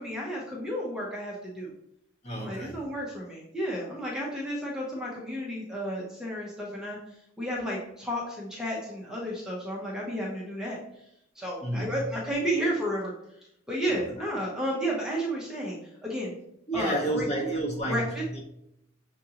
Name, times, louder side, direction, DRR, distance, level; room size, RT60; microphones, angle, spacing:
voice 1, 0.0-1.7 2.4-7.0 7.4-10.8 11.4-13.1 13.7-16.3 16.7-17.5 17.9-18.2, equal, 5° right, -4 dB, 0.7 m, -32 dB
voice 2, 2.2-2.8 11.6-12.0 13.9-14.0 16.7-18.4, right 1 dB, 35° left, -3 dB, 1.2 m, -30 dB
6.5 x 2.5 x 2.8 m, 0.77 s
head